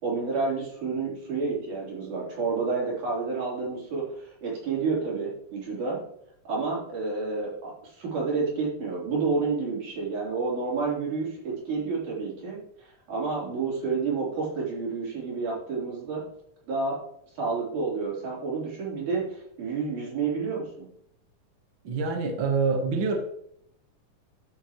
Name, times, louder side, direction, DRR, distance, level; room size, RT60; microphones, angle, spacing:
voice 1, 0.0-6.0 6.4-16.2 16.7-17.0 17.4-20.9, right 4 dB, 75° right, -5 dB, 5.0 m, -30 dB
voice 2, 21.8-23.2, right 4 dB, 50° right, 3 dB, 1.6 m, -26 dB
11.0 x 8.2 x 3.0 m, 0.70 s
omnidirectional pair, 3.6 m